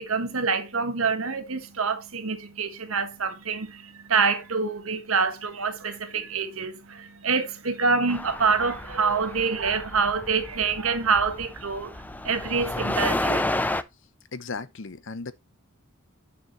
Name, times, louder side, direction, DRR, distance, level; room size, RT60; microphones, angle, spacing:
voice 1, 0.0-13.4, right 5 dB, 90° right, 1.5 m, -26 dB
sound 1, 8.1-13.8, left 1 dB, 10° left, 0.4 m, -31 dB
voice 2, 14.3-15.3, left 4 dB, 65° left, 0.8 m, -35 dB
9.1 x 6.4 x 3.1 m
head